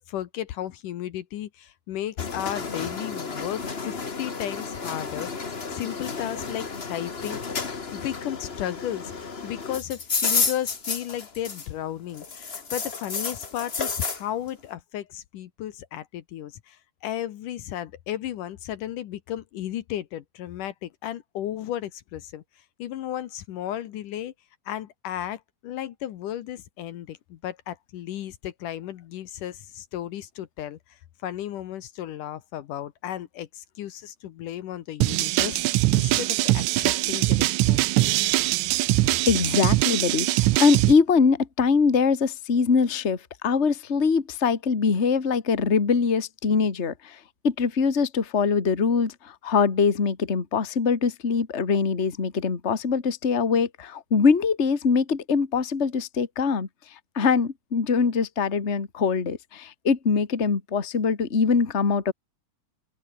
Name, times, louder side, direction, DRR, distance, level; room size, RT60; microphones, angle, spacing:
voice 1, 0.1-7.4 7.7-24.3 24.7-35.6 35.9-38.3, left 12 dB, 70° left, 2.6 m, -34 dB
sound 1, 2.2-11.8 12.1-14.2, left 4 dB, 45° left, 0.8 m, -31 dB
sound 2, 35.0-40.9, right 18 dB, 80° right, 1.8 m, -22 dB
voice 2, 39.2-47.2 47.4-56.7 57.1-62.1, left 5 dB, 25° left, 1.9 m, -23 dB
open air
omnidirectional pair, 4.0 m